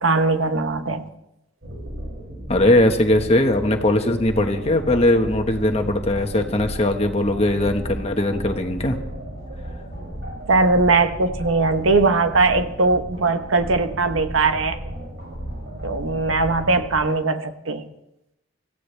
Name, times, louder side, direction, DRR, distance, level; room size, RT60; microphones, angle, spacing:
voice 1, 0.0-1.1 10.5-14.8 15.8-17.8, right 3 dB, 80° right, 8 dB, 1.1 m, -20 dB
sound 1, 1.6-17.0, equal, 60° right, 6.6 m, -34 dB
voice 2, 2.5-9.0, left 1 dB, 30° left, 5 dB, 1.4 m, -20 dB
25.0 x 15.5 x 3.4 m, 0.86 s
head